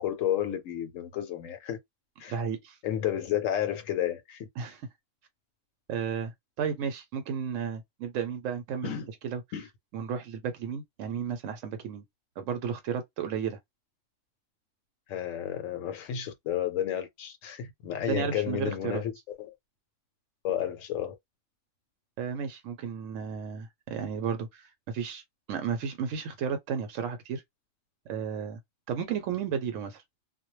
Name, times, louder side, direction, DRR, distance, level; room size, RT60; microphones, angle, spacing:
voice 1, 0.0-1.8 2.2-2.4 2.8-4.5 8.8-9.1 9.5-9.7 15.1-19.1 19.4-19.5 20.4-21.1, left 10 dB, 80° left, 0.9 m, -31 dB
voice 2, 2.3-2.8 4.6-4.8 5.9-8.9 9.2-9.4 9.9-12.0 12.4-13.6 18.0-19.0 22.2-25.2 25.5-27.4 28.1-28.6 28.9-30.0, right 7 dB, 80° right, 0.9 m, -33 dB
2.2 x 2.1 x 3.0 m
omnidirectional pair, 1.3 m